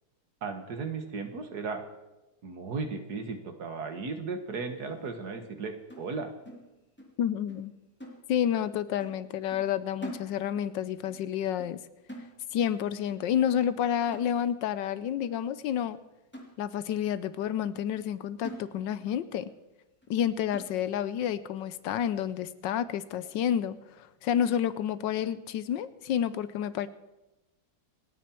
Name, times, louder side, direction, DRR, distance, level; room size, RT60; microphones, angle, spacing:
voice 1, 0.4-1.8 2.4-6.3, right 4 dB, 60° right, 6 dB, 1.9 m, -35 dB
sound 1, 5.9-7.2 7.5-7.7 8.0-8.7 9.0-9.2 9.5-10.8 11.1-11.3 11.6-11.8 12.1-12.8 13.1-13.3 13.6-13.8 14.1-14.8 15.2-15.3 15.8-15.9 16.3-17.0 17.4-17.5 17.9-18.1 18.4-19.2 19.5-19.6 20.0-20.1 20.5-21.1 21.6-21.7 22.0-22.2, equal, 5° left, 2.7 m, -46 dB
voice 2, 7.2-7.7 8.3-11.8 12.5-16.0 16.6-19.5 20.1-26.9, left 9 dB, 80° left, 15 dB, 1.3 m, -29 dB
28.0 x 9.3 x 4.5 m, 1.0 s
omnidirectional pair, 2.0 m